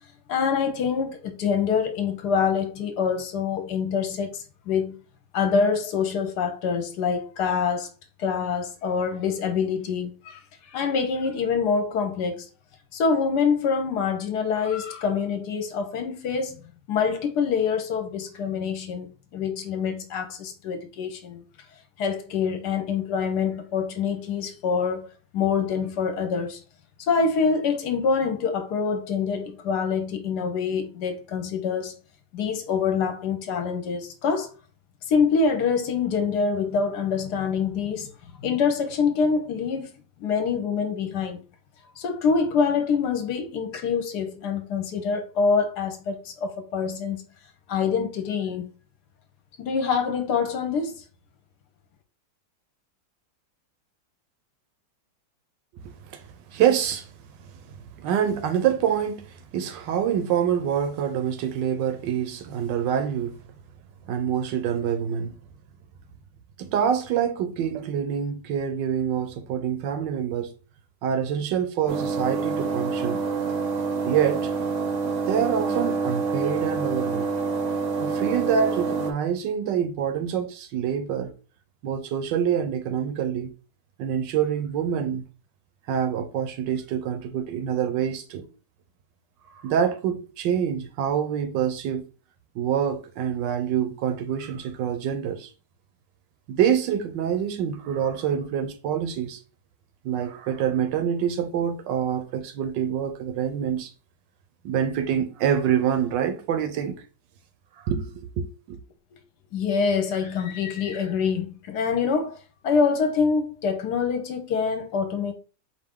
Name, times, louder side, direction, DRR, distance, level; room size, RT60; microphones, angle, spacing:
voice 1, 0.3-5.0 5.3-7.9 8.2-10.4 10.7-12.4 12.9-16.6 16.9-21.4 22.0-25.1 25.3-26.6 27.0-32.0 32.3-34.5 35.1-38.1 38.4-39.9 40.2-41.4 42.0-47.2 47.7-48.7 49.6-50.9 109.5-115.3, left 5 dB, 70° left, 1.1 m, -25 dB
voice 2, 55.8-56.2 56.5-57.1 57.4-63.4 64.1-65.3 66.6-70.5 71.0-73.3 74.0-74.5 75.3-77.3 78.0-81.3 81.8-83.5 84.0-85.2 85.9-88.5 89.6-92.0 92.5-95.5 96.5-99.4 100.0-103.9 104.6-107.0 107.8-108.8, right 8 dB, 80° right, 1.2 m, -26 dB
sound 1, 71.9-79.1, right 4 dB, 60° right, 0.8 m, -27 dB
4.5 x 2.6 x 3.5 m
omnidirectional pair, 2.0 m